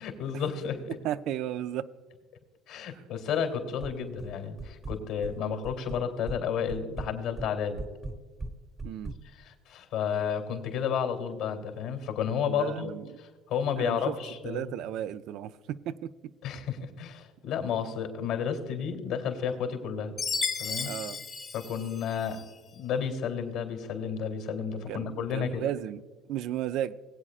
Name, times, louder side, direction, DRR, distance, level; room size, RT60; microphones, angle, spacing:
voice 1, 0.0-0.9 2.7-7.8 9.4-12.9 13.5-14.6 16.4-20.1 20.6-20.9 21.5-22.4 22.7-25.7, left 7 dB, 75° left, 2.8 m, -31 dB
voice 2, 0.9-1.9 2.9-3.0 5.4-5.6 8.8-9.1 12.5-13.1 13.8-14.2 14.4-16.3 20.8-21.2 24.9-26.0 26.3-26.9, right 11 dB, 65° right, 0.4 m, -34 dB
sound 1, 3.8-4.3 4.6-5.3 5.6-6.4 6.7-9.2, right 3 dB, 30° right, 1.1 m, -38 dB
Chime, 20.2-22.5, left 5 dB, 45° left, 1.2 m, -34 dB
20.5 x 8.7 x 2.4 m
supercardioid pair, 75°, 0 cm